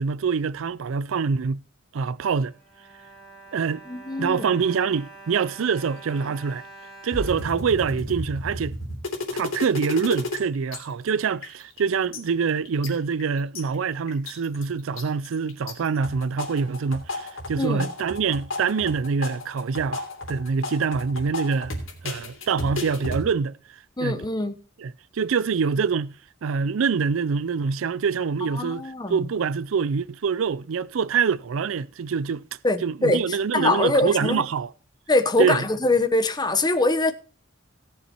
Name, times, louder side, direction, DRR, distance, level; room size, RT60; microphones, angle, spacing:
voice 1, 0.0-1.6 1.9-2.5 3.5-3.8 4.2-6.6 7.0-8.8 9.3-21.8 22.0-23.6 24.0-24.2 24.8-26.1 26.4-32.4 32.8-34.7 35.4-35.6, right 5 dB, 85° right, 0.4 m, -25 dB
Bowed string instrument, 2.4-8.4 9.1-9.2 9.5-9.7, right 2 dB, ahead, 4.5 m, -46 dB
voice 2, 3.9-4.4 17.6-17.9 24.0-24.6 28.5-29.2 32.6-34.4 35.1-37.1, left 2 dB, 20° left, 1.0 m, -23 dB
sound 1, 7.1-10.4 10.7-10.8 11.1-11.8 12.1-13.6 14.1-14.6 15.0-15.7 16.0-23.2, left 2 dB, 85° left, 3.1 m, -32 dB
17.0 x 7.0 x 4.4 m
head